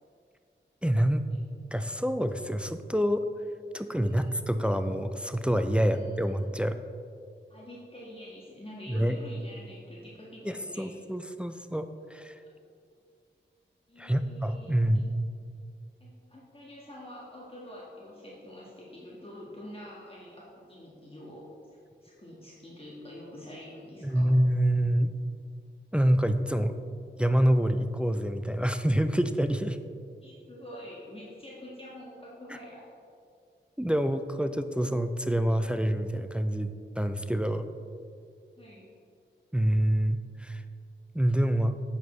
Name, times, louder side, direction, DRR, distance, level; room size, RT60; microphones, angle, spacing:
voice 1, 0.8-1.2 1.7-3.2 3.7-6.8 8.9-9.2 10.4-12.4 14.0-15.1 24.0-25.2 25.9-26.7 27.2-29.8 32.5-32.6 33.8-37.7 39.5-40.6 41.1-41.7, equal, 5° right, 9 dB, 0.4 m, -27 dB
voice 2, 3.8-4.3 5.8-6.2 7.5-11.0 12.4-12.5 13.9-15.1 16.0-21.5 22.0-24.3 30.2-32.9 38.6-38.9, left 1 dB, 30° left, -6 dB, 1.5 m, -46 dB
8.0 x 6.9 x 3.2 m, 2.3 s
cardioid pair, 50°, 20 cm